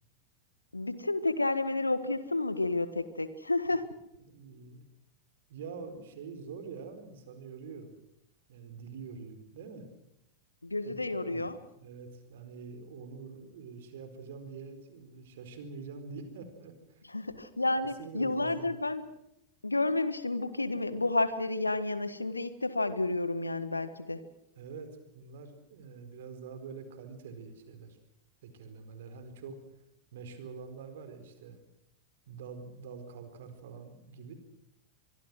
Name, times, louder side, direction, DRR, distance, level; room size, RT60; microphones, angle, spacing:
voice 1, 0.7-3.9 10.6-11.6 17.1-19.1 19.6-24.2, left 2 dB, 80° left, 13 dB, 1.7 m, -31 dB
voice 2, 4.3-4.8 5.5-7.9 8.5-9.9 10.8-11.0 11.2-17.0 17.6-17.7 18.0-18.7 24.6-28.0 28.4-29.6 30.1-31.6 32.3-34.3, right 5 dB, 55° right, 9 dB, 4.4 m, -45 dB
25.5 x 22.5 x 6.3 m, 0.81 s
figure-of-eight pair, 90°, 0 cm